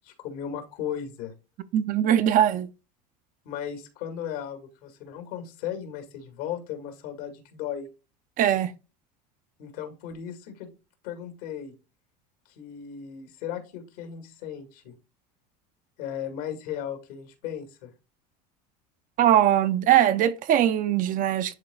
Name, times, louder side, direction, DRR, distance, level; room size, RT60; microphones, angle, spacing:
voice 1, 0.0-1.3 3.5-7.9 9.6-10.7 11.0-11.7 12.6-15.0 16.0-17.9, left 9 dB, 80° left, 2.2 m, -36 dB
voice 2, 1.7-2.7 8.4-8.7 19.2-21.5, right 11 dB, 40° right, 0.6 m, -21 dB
11.0 x 3.8 x 2.3 m
supercardioid pair, 115°, 20 cm